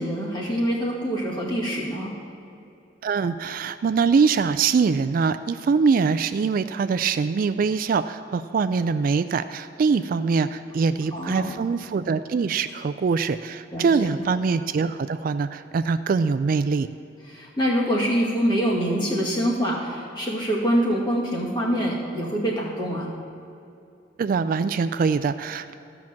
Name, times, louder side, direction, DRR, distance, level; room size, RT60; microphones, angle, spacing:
voice 1, 0.0-2.2 11.1-11.6 13.7-14.1 17.3-23.1, equal, 25° left, -4 dB, 2.1 m, -25 dB
voice 2, 3.0-16.9 24.2-25.7, right 5 dB, 50° right, 12 dB, 0.3 m, -23 dB
14.0 x 6.0 x 7.4 m, 2.7 s
head